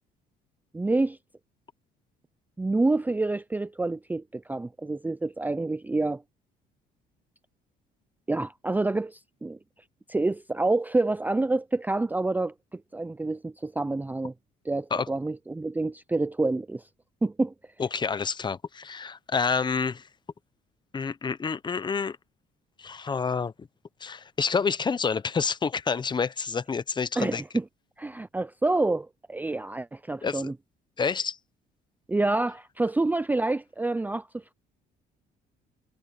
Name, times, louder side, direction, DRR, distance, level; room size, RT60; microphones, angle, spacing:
voice 1, 0.7-1.2 2.6-6.2 8.3-9.6 10.1-14.3 14.7-16.8 17.2-17.5 27.2-27.6 28.0-30.5 32.1-34.5, right 2 dB, 10° right, 0.5 m, -27 dB
voice 2, 17.8-20.0 20.9-22.2 22.8-23.5 24.0-27.4 30.2-30.5 31.0-31.4, left 5 dB, 25° left, 0.9 m, -28 dB
cardioid pair, 110°, 17 cm